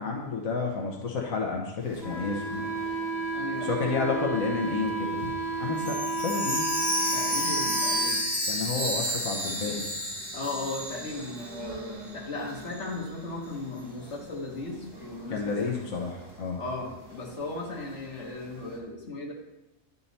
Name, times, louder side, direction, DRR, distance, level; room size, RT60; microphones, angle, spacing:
voice 1, 0.0-2.7 3.6-5.3 5.6-6.7 8.5-9.9 15.3-16.1 16.4-16.6, left 4 dB, 90° left, 1 dB, 1.5 m, -30 dB
sound 1, 1.8-18.8, right 1 dB, 15° right, 1.6 m, -48 dB
Wind instrument woodwind instrument, 2.0-8.2, right 1 dB, ahead, 1.8 m, -32 dB
voice 2, 3.3-3.7 7.1-8.3 8.7-8.8 10.3-15.7 16.6-19.3, left 2 dB, 60° left, -1 dB, 1.8 m, -36 dB
Chime, 5.8-11.7 12.0-12.1 12.7-12.8, right 1 dB, 75° right, 2.4 m, -31 dB
10.0 x 5.6 x 4.1 m, 0.97 s
omnidirectional pair, 1.4 m